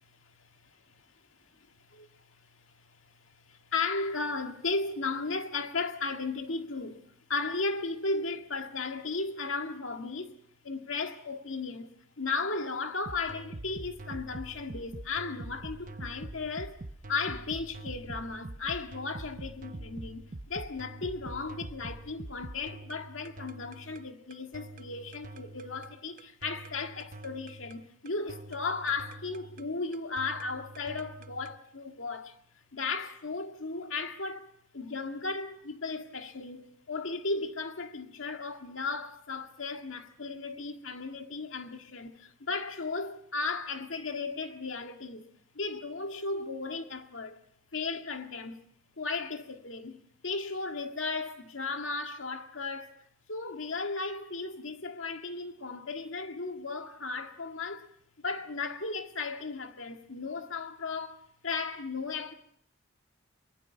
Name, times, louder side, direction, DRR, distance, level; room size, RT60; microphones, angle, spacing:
voice 1, 0.2-0.7 1.9-7.0 7.3-10.4 10.6-11.9 12.2-16.8 17.1-32.4 32.7-45.2 45.6-47.4 47.7-48.6 49.0-50.0 50.2-52.9 53.3-58.0 58.2-62.3, left 3 dB, 85° left, 1.8 m, -35 dB
sound 1, 13.0-31.6, right 2 dB, 45° right, 0.8 m, -45 dB
24.0 x 22.5 x 5.8 m
head